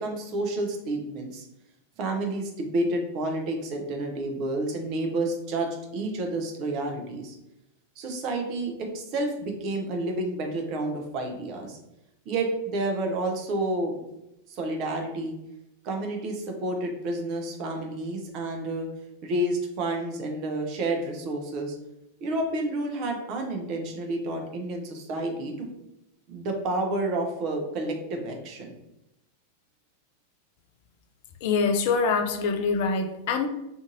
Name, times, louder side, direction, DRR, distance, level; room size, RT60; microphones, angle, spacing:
voice 1, 0.0-1.4 2.0-7.3 8.0-11.8 12.3-14.0 14.5-15.3 15.8-18.9 19.2-21.7 22.2-25.7 26.3-28.7, right 2 dB, 40° right, 2 dB, 0.6 m, -30 dB
voice 2, 31.4-33.5, left 4 dB, 50° left, 6 dB, 0.3 m, -24 dB
2.6 x 2.5 x 2.6 m, 0.87 s
figure-of-eight pair, 90°, 0 cm